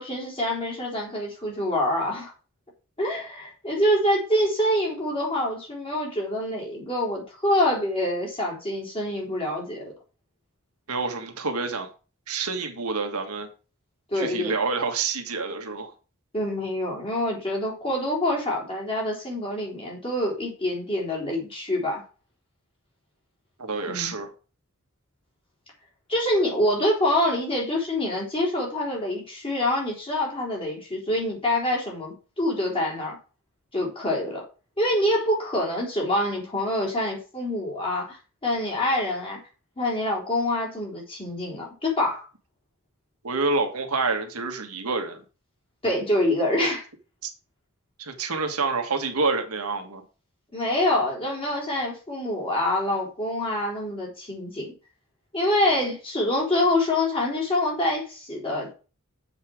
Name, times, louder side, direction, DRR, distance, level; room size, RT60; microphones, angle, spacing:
voice 1, 0.0-2.3 3.0-9.9 14.1-14.6 16.3-22.0 23.9-24.1 26.1-33.2 33.7-34.4 34.8-38.2 38.4-39.4 39.8-42.3 45.8-46.9 50.5-54.7 55.3-58.7, left 1 dB, 25° left, 3.7 m, -26 dB
voice 2, 10.9-11.9 12.3-13.5 14.1-15.9 23.6-24.3 43.2-45.2 47.2-47.3 48.0-50.0, right 4 dB, 85° right, 1.6 m, -28 dB
7.5 x 5.6 x 6.3 m
head